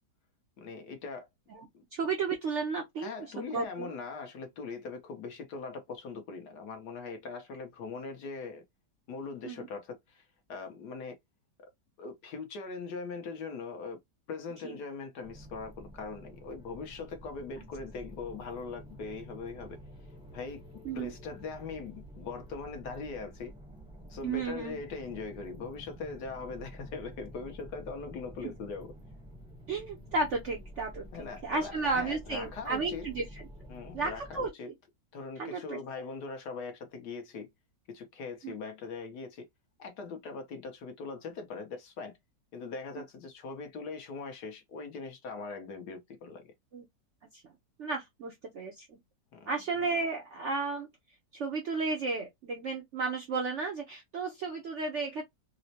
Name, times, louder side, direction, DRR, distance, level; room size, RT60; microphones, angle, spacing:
voice 1, 0.6-1.3 3.0-8.6 9.1-11.2 11.6-11.7 12.0-14.0 14.3-19.8 20.3-20.6 20.9-23.5 24.1-28.9 31.1-33.1 33.7-34.7 35.1-37.5 37.9-39.5 39.8-42.1 42.5-46.5 49.3-49.5, left 4 dB, 70° left, 1.4 m, -41 dB
voice 2, 1.9-3.9 9.4-9.7 14.6-14.8 20.8-21.1 24.2-24.8 29.7-31.0 31.4-33.2 33.9-34.5 35.4-35.8 38.4-38.5 46.7-46.8 47.8-49.0 49.5-50.9 51.3-55.2, right 4 dB, 65° right, 0.7 m, -33 dB
sound 1, 15.2-34.5, equal, 5° right, 0.6 m, -49 dB
4.2 x 2.1 x 2.7 m
omnidirectional pair, 1.9 m